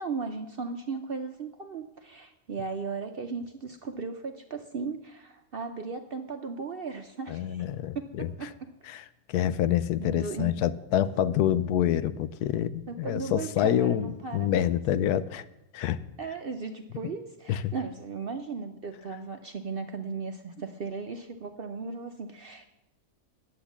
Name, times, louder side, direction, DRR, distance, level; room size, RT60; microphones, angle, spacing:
voice 1, 0.0-7.6 7.9-8.9 10.0-10.6 12.9-14.8 16.2-22.7, right 4 dB, 55° right, 6 dB, 0.6 m, -36 dB
voice 2, 7.3-8.5 8.9-15.4 15.7-16.0 17.5-17.7, left 11 dB, 85° left, 14 dB, 1.1 m, -27 dB
10.0 x 8.0 x 7.1 m, 0.91 s
omnidirectional pair, 1.6 m